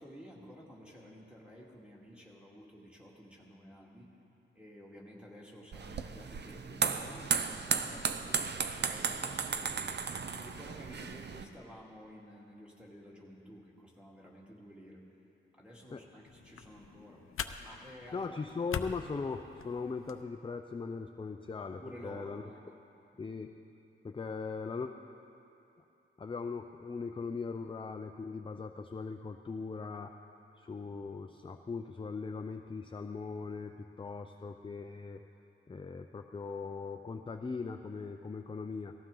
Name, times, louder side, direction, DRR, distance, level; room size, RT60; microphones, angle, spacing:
voice 1, 0.0-4.2 4.5-15.0 15.6-17.4 17.6-18.3 21.8-22.6 23.1-23.3, equal, 5° right, -4 dB, 2.3 m, -52 dB
sound 1, 5.7-11.4, right 6 dB, 55° right, 0.6 m, -35 dB
sound 2, 16.3-20.2, left 7 dB, 80° left, 0.6 m, -43 dB
voice 2, 18.1-22.4 23.2-23.5 24.0-24.9 26.2-30.1 30.6-35.2 35.7-38.9, left 4 dB, 25° left, 5 dB, 0.4 m, -39 dB
18.5 x 14.5 x 3.8 m, 2.8 s
wide cardioid pair, 135°, 21 cm